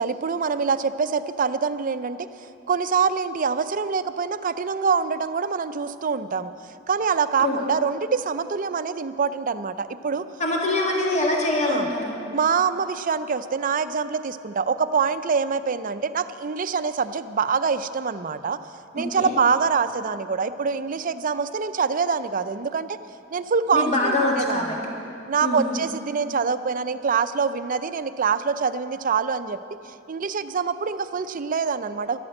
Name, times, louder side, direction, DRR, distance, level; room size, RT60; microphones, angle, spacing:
voice 1, 0.0-6.5 6.9-10.3 11.7-11.9 12.3-18.6 18.9-23.0 23.3-24.8 25.3-29.6 30.1-32.2, right 5 dB, 45° right, 12 dB, 0.5 m, -25 dB
voice 2, 10.4-12.1 19.0-19.3 23.7-24.8 25.4-25.8, left 2 dB, 35° left, -1 dB, 1.9 m, -24 dB
13.0 x 12.0 x 7.7 m, 2.6 s
head